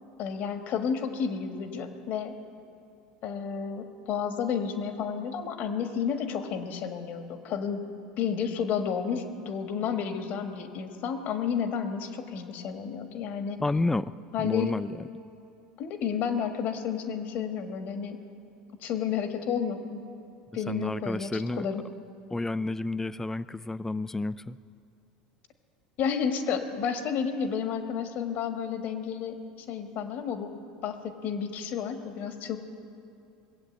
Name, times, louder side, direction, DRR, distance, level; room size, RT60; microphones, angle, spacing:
voice 1, 0.2-2.4 3.2-7.8 8.2-13.6 14.3-14.7 15.8-18.2 18.8-20.0 20.5-21.8 26.0-29.4 29.7-30.5 30.8-32.6, left 7 dB, 55° left, 6 dB, 1.6 m, -31 dB
voice 2, 13.6-14.1 14.4-15.1 20.7-21.7 22.3-24.6, left 2 dB, 10° left, 16 dB, 0.4 m, -30 dB
20.5 x 8.2 x 8.1 m, 2.6 s
hypercardioid pair, 90°, 4 cm